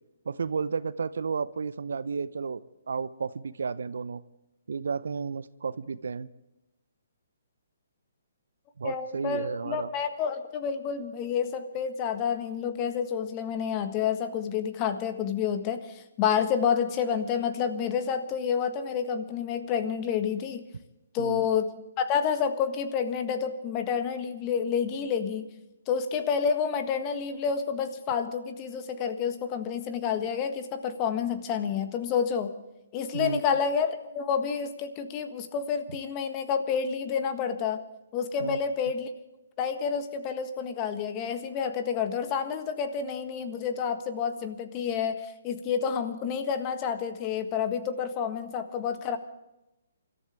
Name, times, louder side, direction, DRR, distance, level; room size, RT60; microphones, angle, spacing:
voice 1, 0.3-4.2 4.7-6.3 8.8-9.9 21.2-21.5 33.1-33.4 38.4-38.6, right 5 dB, 70° right, 17 dB, 0.7 m, -32 dB
voice 2, 8.8-20.6 21.1-21.7 22.0-25.5 25.9-32.5 32.9-37.8 38.1-39.1 39.6-49.2, left 7 dB, 30° left, 8 dB, 1.6 m, -29 dB
28.5 x 14.0 x 3.6 m, 0.93 s
figure-of-eight pair, 135°, 0 cm